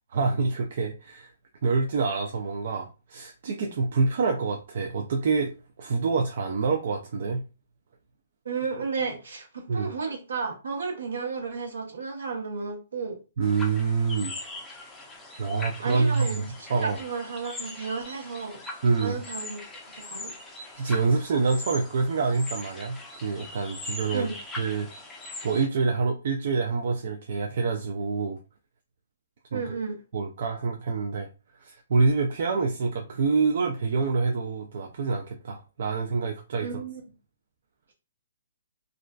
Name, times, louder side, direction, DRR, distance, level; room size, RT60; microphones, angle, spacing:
voice 1, 0.1-1.3 1.6-5.5 5.8-7.4 9.7-9.9 13.4-14.4 15.4-17.0 18.8-19.2 20.0-20.1 20.8-24.3 24.6-24.9 25.4-28.4 29.5-29.6 30.1-31.3 31.6-36.7, right 4 dB, 60° right, 3 dB, 0.4 m, -26 dB
voice 2, 8.4-13.2 15.8-18.6 19.0-19.6 20.1-20.3 24.1-24.4 29.5-30.0 36.6-37.0, right 5 dB, 80° right, 1 dB, 0.9 m, -33 dB
sound 1, 13.4-25.7, left 2 dB, 10° left, 0.4 m, -41 dB
2.4 x 2.2 x 2.3 m, 0.31 s
hypercardioid pair, 145°, 0 cm